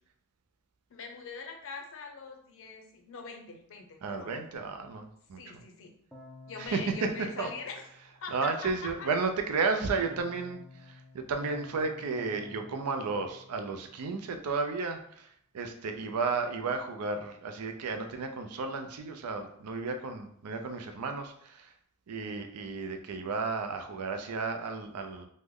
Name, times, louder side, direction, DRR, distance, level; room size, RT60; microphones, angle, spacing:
voice 1, 0.9-4.3 5.4-5.9 6.5-7.8 8.2-9.1 16.0-16.1, left 5 dB, 60° left, 3 dB, 0.5 m, -43 dB
voice 2, 4.0-5.6 6.6-7.1 7.4-7.5 8.3-15.3 15.5-21.7 22.1-25.3, right 4 dB, 90° right, 6 dB, 0.5 m, -33 dB
Keyboard (musical), 6.1-8.4 10.0-14.3, left 2 dB, 5° left, 0.4 m, -52 dB
3.2 x 2.0 x 3.6 m, 0.67 s
head